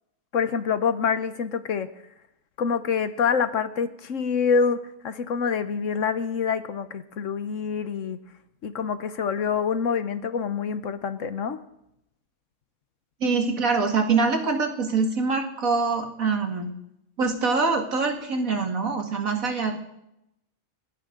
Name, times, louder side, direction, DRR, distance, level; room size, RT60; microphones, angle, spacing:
voice 1, 0.3-1.9 2.6-8.2 8.6-11.6, left 6 dB, 65° left, 11 dB, 1.2 m, -26 dB
voice 2, 13.2-16.7 17.2-19.8, right 4 dB, 75° right, 3 dB, 2.5 m, -24 dB
29.5 x 11.0 x 3.9 m, 0.82 s
omnidirectional pair, 1.4 m